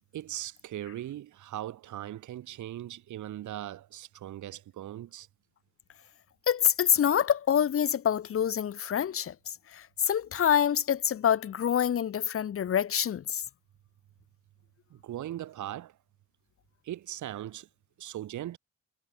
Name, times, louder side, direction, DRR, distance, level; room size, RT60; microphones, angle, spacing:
voice 1, 0.1-5.3 14.9-16.0 16.8-17.7 18.0-18.6, right 12 dB, 75° right, 2.6 m, -39 dB
voice 2, 6.5-13.4, left 9 dB, 45° left, 1.0 m, -26 dB
cardioid pair, 90°, 30 cm